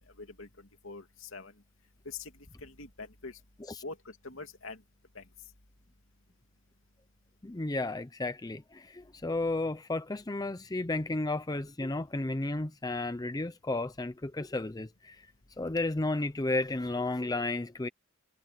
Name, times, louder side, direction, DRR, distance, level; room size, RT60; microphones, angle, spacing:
voice 1, 0.2-1.5 2.0-3.4 3.8-4.8 5.1-5.2, left 4 dB, 75° left, 2.7 m, -44 dB
voice 2, 7.4-15.3 15.6-17.9, left 2 dB, 20° left, 0.6 m, -33 dB
head